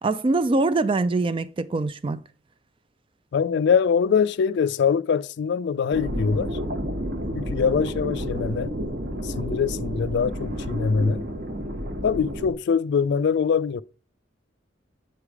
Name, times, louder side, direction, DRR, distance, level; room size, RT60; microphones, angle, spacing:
voice 1, 0.0-2.2, right 3 dB, 30° right, 0.4 m, -23 dB
voice 2, 3.3-6.6 7.3-8.7 9.2-11.2 12.0-13.8, left 6 dB, 65° left, 0.3 m, -23 dB
sound 1, 5.9-12.5, equal, 50° right, 1.1 m, -30 dB
8.0 x 3.3 x 4.8 m
head